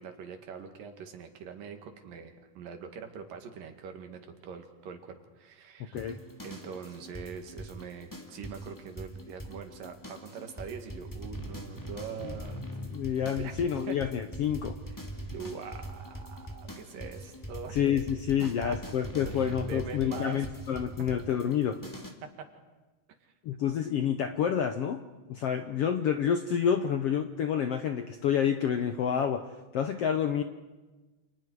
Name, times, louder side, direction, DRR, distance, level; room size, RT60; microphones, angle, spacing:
voice 1, 0.0-6.0 6.4-12.6 13.4-13.6 13.9-14.0 15.3-17.7 18.7-18.8 19.2-20.5 22.2-22.5 23.2-23.3, right 6 dB, 80° right, 5 dB, 3.7 m, -43 dB
sound 1, 5.9-22.1, equal, 10° left, 1.4 m, -42 dB
voice 2, 12.9-14.8 17.7-21.8 23.4-25.0 25.3-29.4 29.7-30.4, left 8 dB, 75° left, 8 dB, 1.4 m, -28 dB
29.5 x 27.5 x 4.8 m, 1.2 s
omnidirectional pair, 3.8 m